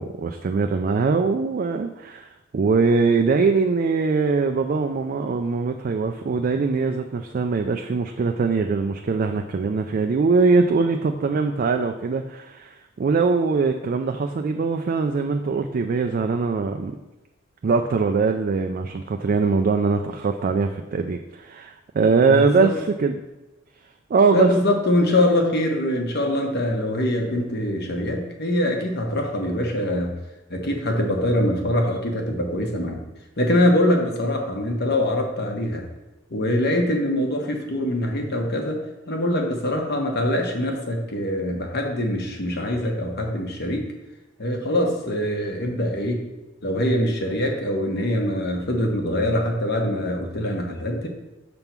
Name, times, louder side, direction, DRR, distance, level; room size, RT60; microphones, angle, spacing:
voice 1, 0.0-16.9 17.6-23.2 24.1-24.5, right 4 dB, 40° right, 5 dB, 0.3 m, -22 dB
voice 2, 22.3-22.7 24.3-30.1 30.5-33.0 33.4-35.8 36.3-38.8 39.1-43.8 44.4-46.2 46.6-51.1, left 1 dB, 50° left, 2 dB, 1.1 m, -23 dB
6.8 x 3.6 x 5.9 m, 1.1 s
head